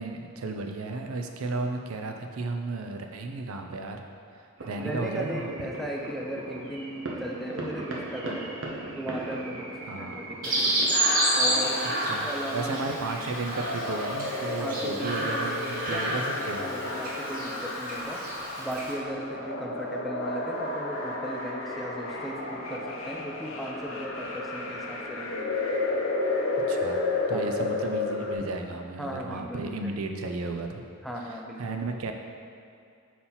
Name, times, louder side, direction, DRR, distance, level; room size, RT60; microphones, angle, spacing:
voice 1, 0.0-4.1 4.4-5.7 9.8-10.1 12.0-16.7 26.7-30.8 31.6-32.1, right 3 dB, 80° right, 4 dB, 0.5 m, -34 dB
sound 1, 4.6-12.1, right 1 dB, 60° right, 0.9 m, -39 dB
voice 2, 4.8-8.5 8.9-11.0 11.3-13.0 14.6-18.2 18.6-25.5 27.3-27.5 29.0-29.9 31.0-31.8, equal, ahead, -1 dB, 0.4 m, -37 dB
Chirp tweet, 10.4-18.9, right 1 dB, 40° right, 1.0 m, -30 dB
sound 2, 10.9-28.3, left 2 dB, 65° left, 0.7 m, -32 dB
5.6 x 4.2 x 4.3 m, 2.5 s
head